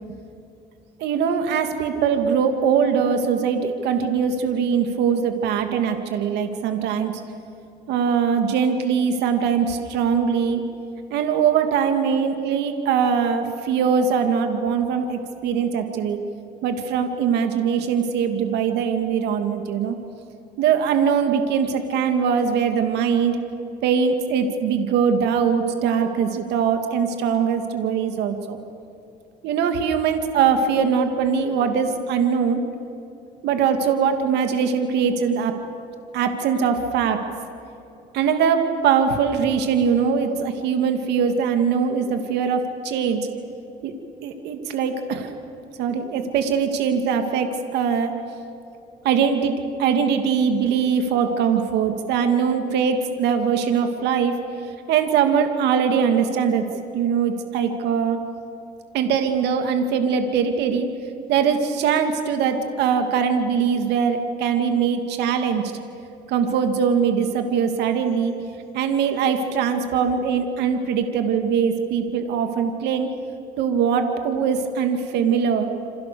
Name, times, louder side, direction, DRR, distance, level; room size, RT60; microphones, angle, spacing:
voice 1, 1.0-7.2 7.9-10.6 11.1-16.2 16.6-20.0 20.6-23.4 23.8-28.6 29.4-32.6 33.4-35.6 36.1-37.2 38.1-43.2 43.8-43.9 44.2-45.3 45.8-48.1 49.0-54.4 54.9-56.6 56.9-58.2 58.9-60.9 61.3-65.8 66.3-68.4 68.7-73.1 73.6-75.7, right 6 dB, 85° right, 6 dB, 2.5 m, -22 dB
28.5 x 27.0 x 7.0 m, 2.7 s
cardioid pair, 110°, 17 cm